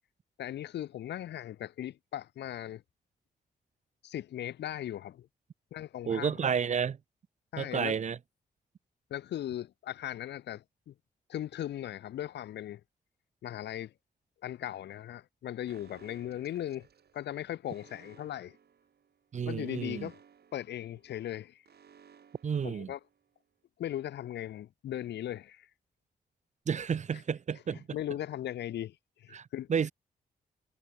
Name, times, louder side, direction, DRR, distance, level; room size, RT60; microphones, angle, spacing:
voice 1, 0.4-2.8 4.0-5.3 5.7-6.5 7.5-8.0 9.1-10.9 11.3-12.8 13.4-13.9 14.4-16.9 17.1-18.6 19.4-20.2 20.5-21.6 22.6-23.0 23.8-25.7 27.1-27.2 27.7-29.7, left 12 dB, 80° left, 0.8 m, -38 dB
voice 2, 6.1-7.0 7.6-8.2 19.3-20.1 22.4-22.9 26.7-27.8 29.3-29.9, right 7 dB, 45° right, 0.5 m, -31 dB
Alarm, 15.7-23.4, right 7 dB, 70° right, 3.8 m, -60 dB
supercardioid pair, 50°, 17 cm